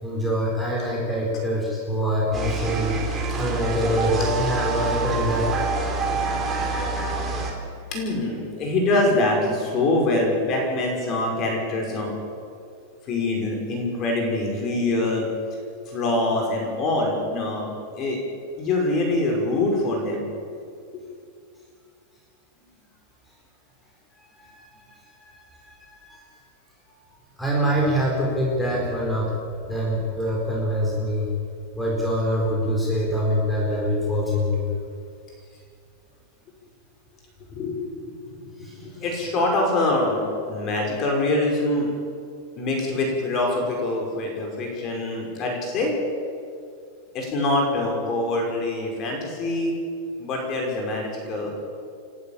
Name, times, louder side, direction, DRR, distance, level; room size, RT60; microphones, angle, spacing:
voice 1, 0.0-3.0 3.4-5.5 24.2-24.9 25.2-26.2 27.4-29.3 29.6-31.3 31.8-34.7 38.6-38.9, equal, 5° left, -4 dB, 4.5 m, -25 dB
sound 1, 2.3-7.5, right 3 dB, 15° right, 3.9 m, -26 dB
voice 2, 7.9-12.1 13.0-15.3 15.9-18.2 18.6-20.3 20.9-21.0 26.1-26.2 37.5-41.9 42.6-45.9 47.1-49.7 50.2-51.5, left 2 dB, 30° left, 1 dB, 5.7 m, -24 dB
29.5 x 12.5 x 8.9 m, 2.3 s
supercardioid pair, 160°, 0 cm